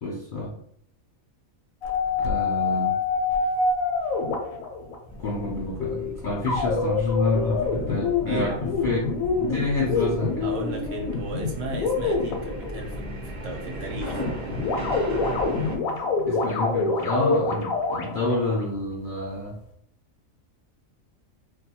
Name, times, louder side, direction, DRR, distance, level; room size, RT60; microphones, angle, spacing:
voice 1, 0.0-0.6 2.2-3.0 5.2-8.6 8.8-9.0 9.4-10.5 16.2-19.6, left 2 dB, 65° left, -4 dB, 0.5 m, -28 dB
sound 1, 1.8-4.9 6.5-12.9 14.1-18.6, left 4 dB, 85° left, 1.0 m, -26 dB
sound 2, 5.1-15.8, right 1 dB, 45° right, 0.6 m, -36 dB
voice 2, 8.3-8.8 9.8-9.9 10.4-14.2, right 2 dB, 70° right, 1 dB, 0.9 m, -34 dB
2.5 x 2.2 x 2.7 m, 0.65 s
omnidirectional pair, 1.4 m